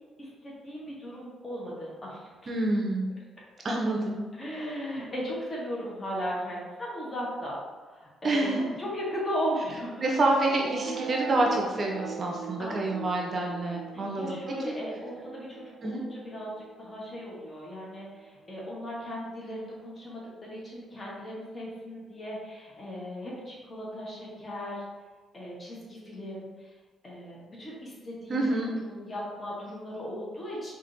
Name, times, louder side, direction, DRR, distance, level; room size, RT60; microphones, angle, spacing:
voice 1, 0.2-2.5 4.3-7.6 7.9-8.4 8.8-10.2 12.6-13.0 13.9-16.5 16.8-24.8 25.3-26.7 27.0-28.5 28.8-30.7, equal, 30° left, -5 dB, 1.2 m, -37 dB
voice 2, 2.5-3.1 3.6-4.2 8.2-8.6 10.0-14.4 14.6-14.7 15.8-16.0 28.3-28.7, right 2 dB, 40° right, 0 dB, 0.5 m, -27 dB
sound 1, 10.5-17.5, right 6 dB, 90° right, 0.3 m, -40 dB
4.9 x 2.6 x 2.6 m, 1.4 s
cardioid pair, 90°, 0 cm